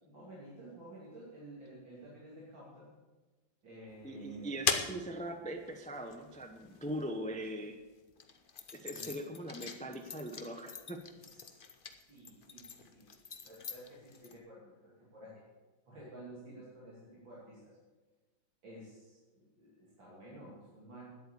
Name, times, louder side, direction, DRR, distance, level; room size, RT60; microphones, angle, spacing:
voice 1, 0.0-2.9 3.6-4.6 8.9-9.1 11.2-11.6 12.1-13.1 13.4-15.4 15.8-17.8 18.6-21.1, right 1 dB, 70° right, -7 dB, 3.5 m, -52 dB
sound 1, 3.9-7.5 8.1-14.4, left 5 dB, 50° left, 0.6 m, -41 dB
voice 2, 4.0-7.8 8.7-11.0, equal, 10° left, 5 dB, 0.3 m, -41 dB
10.5 x 8.3 x 8.5 m, 1.2 s
omnidirectional pair, 2.2 m